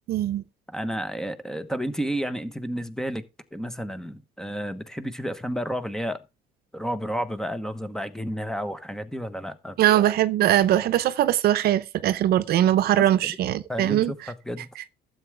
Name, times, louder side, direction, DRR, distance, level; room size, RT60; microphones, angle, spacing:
voice 1, 0.1-0.4 9.8-14.3, right 12 dB, 65° right, 0.7 m, -21 dB
voice 2, 0.7-3.2 3.5-6.2 6.7-9.7 12.9-13.3 13.7-14.2 14.4-14.7, equal, 5° left, 1.1 m, -31 dB
12.5 x 7.8 x 3.4 m
cardioid pair, 110°, 17 cm